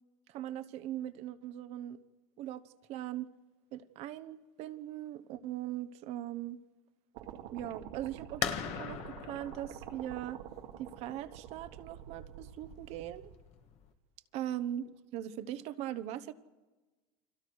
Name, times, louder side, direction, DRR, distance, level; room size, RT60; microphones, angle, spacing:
voice 1, 0.3-2.0 2.4-2.6 2.9-3.3 3.7-6.6 7.5-10.4 10.8-13.2 14.3-14.8 15.1-16.3, right 12 dB, 50° right, 13 dB, 1.1 m, -40 dB
sound 1, 7.1-13.4, right 10 dB, 70° right, 1.9 m, -48 dB
sound 2, 8.4-13.9, left 10 dB, 50° left, 1.7 m, -41 dB
29.5 x 25.0 x 4.8 m, 1.2 s
cardioid pair, 155°, 14 cm